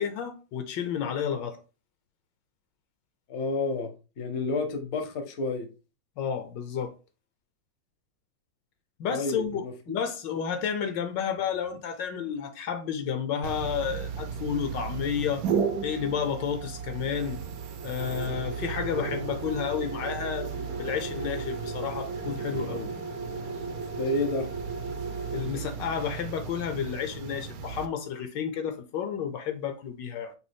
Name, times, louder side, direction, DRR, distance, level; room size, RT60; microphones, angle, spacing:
voice 1, 0.0-1.6 6.2-6.9 9.0-15.4 15.8-17.4 17.8-22.9 25.3-30.3, left 7 dB, 75° left, 1.3 m, -31 dB
voice 2, 3.3-3.9 4.2-5.7 9.1-9.7 23.9-24.5, left 2 dB, 50° left, 0.8 m, -29 dB
sound 1, 13.4-27.9, right 5 dB, 65° right, 0.9 m, -34 dB
5.2 x 3.0 x 3.4 m
omnidirectional pair, 2.0 m